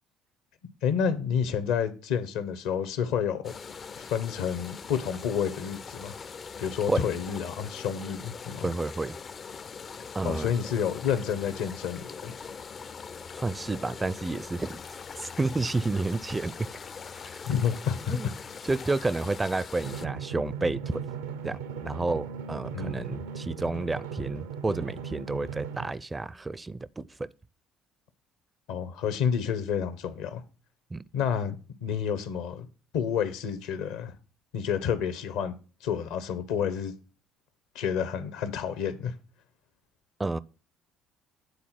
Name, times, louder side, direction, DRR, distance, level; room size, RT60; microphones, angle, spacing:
voice 1, 0.8-3.5 4.0-6.2 6.6-8.7 10.2-12.3 17.4-18.3 22.7-23.1 28.7-30.4 31.1-31.6 31.8-32.7 32.9-34.1 34.5-35.5 35.8-36.9 37.7-39.1, left 7 dB, 70° left, 1.0 m, -29 dB
sound 1, 3.4-20.1, left 5 dB, 40° left, 0.5 m, -42 dB
voice 2, 8.6-9.2 10.1-10.5 13.3-14.8 15.2-16.5 17.2-17.4 18.1-18.3 18.6-21.0 21.4-27.3 30.9-31.0 40.2-40.4, right 3 dB, 20° right, 0.4 m, -30 dB
Drum, 19.8-25.9, right 7 dB, 80° right, 0.6 m, -38 dB
9.6 x 4.1 x 5.8 m
hypercardioid pair, 55°, 0 cm